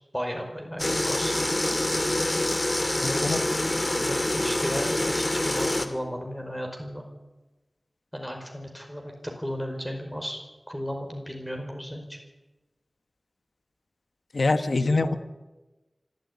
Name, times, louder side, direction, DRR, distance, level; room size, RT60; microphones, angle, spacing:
voice 1, 0.1-1.4 3.0-3.3 4.0-7.0 8.1-10.4 10.7-12.2 14.9-15.2, equal, 10° left, 2 dB, 5.0 m, -34 dB
sound 1, 0.8-5.9, left 1 dB, 30° left, 2.3 m, -26 dB
voice 2, 3.0-3.4 14.3-15.2, left 3 dB, 75° left, 10 dB, 1.3 m, -24 dB
25.5 x 13.5 x 9.7 m, 1.1 s
wide cardioid pair, 65°, 0 cm